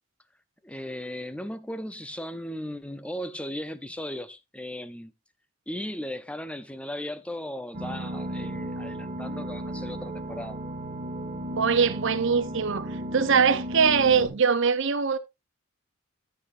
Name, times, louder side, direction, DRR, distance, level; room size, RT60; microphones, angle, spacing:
voice 1, 0.6-5.1 5.7-10.6, left 1 dB, 5° left, 0.7 m, -37 dB
sound 1, 7.7-14.3, right 1 dB, 40° right, 1.9 m, -34 dB
voice 2, 11.6-12.9 13.1-15.2, right 6 dB, 65° right, 0.9 m, -22 dB
13.5 x 6.9 x 2.6 m
head